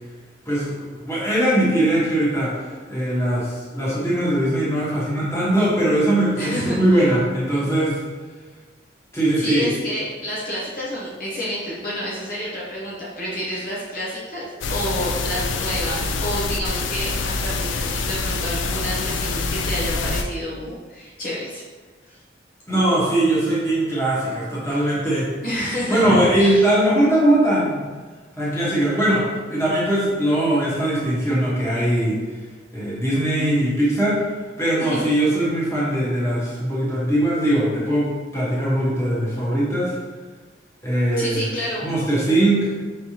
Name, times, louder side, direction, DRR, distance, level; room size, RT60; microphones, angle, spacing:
voice 1, 0.5-2.6 2.9-8.0 9.1-9.7 22.7-25.3 25.9-27.9 28.4-32.2 32.7-34.3 34.6-39.9 40.8-41.5 41.8-42.7, right 1 dB, 15° left, -8 dB, 1.2 m, -20 dB
voice 2, 6.4-7.1 9.4-21.6 25.4-26.6 34.8-35.1 41.2-41.9, equal, 50° left, -7 dB, 0.9 m, -29 dB
sound 1, 14.6-20.2, left 3 dB, 85° left, 0.4 m, -25 dB
5.5 x 3.3 x 2.9 m, 1.4 s
head